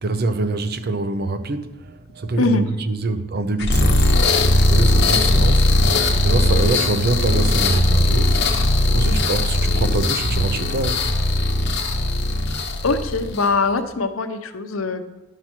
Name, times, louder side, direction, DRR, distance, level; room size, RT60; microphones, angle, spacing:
voice 1, 0.0-4.2 4.6-5.9 6.2-8.5 8.9-11.1, right 2 dB, 50° right, 0.6 m, -25 dB
sound 1, 3.6-13.6, left 1 dB, 55° left, 1.1 m, -18 dB
voice 2, 12.8-15.1, left 3 dB, 85° left, 0.7 m, -22 dB
11.5 x 5.8 x 4.5 m
head